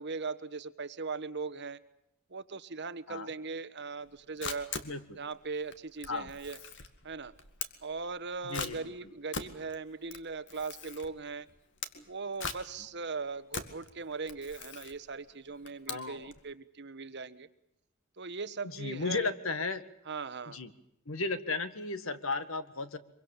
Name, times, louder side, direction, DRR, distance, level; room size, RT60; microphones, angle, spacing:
voice 1, 0.0-1.8 2.3-4.7 5.1-6.6 7.0-7.3 7.8-11.5 12.0-17.5 18.2-19.3 20.1-20.6, right 4 dB, 55° right, 11 dB, 1.3 m, -39 dB
Camera, 4.0-16.4, left 5 dB, 60° left, 2.2 m, -43 dB
voice 2, 4.8-5.2 6.1-6.3 8.4-8.9 15.9-16.3 18.6-19.8 20.5-20.7 21.1-23.0, left 3 dB, 75° left, 11 dB, 1.8 m, -35 dB
24.5 x 24.0 x 7.3 m, 0.75 s
head